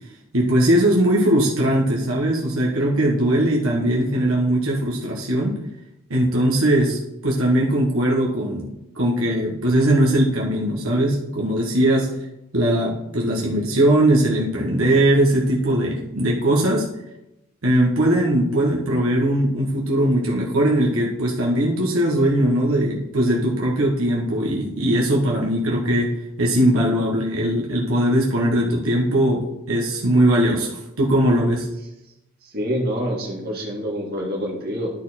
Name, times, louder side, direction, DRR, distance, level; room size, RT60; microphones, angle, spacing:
voice 1, 0.3-5.6 6.1-8.7 8.9-12.1 12.5-16.8 17.6-26.1 26.4-31.7, right 1 dB, 85° right, -2 dB, 1.4 m, -20 dB
voice 2, 32.4-34.9, equal, 50° right, -2 dB, 2.2 m, -26 dB
12.0 x 4.4 x 4.3 m, 0.89 s
head